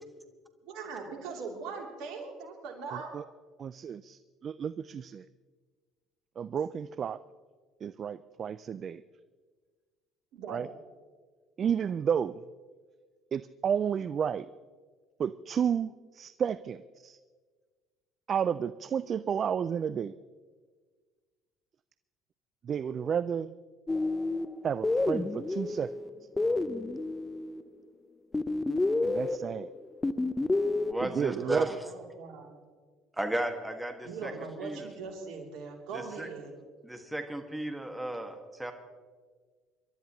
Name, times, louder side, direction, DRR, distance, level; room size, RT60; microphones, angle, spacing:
voice 1, 0.6-3.1 10.3-10.7 31.3-32.6 34.0-36.5, right 5 dB, 70° right, 1 dB, 3.1 m, -40 dB
voice 2, 2.9-3.2 3.6-5.2 6.4-7.2 7.8-9.0 10.5-10.7 11.6-12.5 13.3-14.5 15.2-17.2 18.3-20.2 22.6-23.5 24.6-25.9 29.0-29.7 31.0-31.7, right 8 dB, 45° right, 16 dB, 0.4 m, -31 dB
sound 1, 23.9-27.6 28.3-30.9, left 2 dB, 20° left, 0.8 m, -30 dB
voice 3, 30.9-31.8 33.1-34.3 34.6-34.9 35.9-36.3 36.8-38.7, right 1 dB, 10° right, 5 dB, 1.8 m, -34 dB
27.0 x 12.5 x 3.1 m, 1.5 s
hypercardioid pair, 65°, 0 cm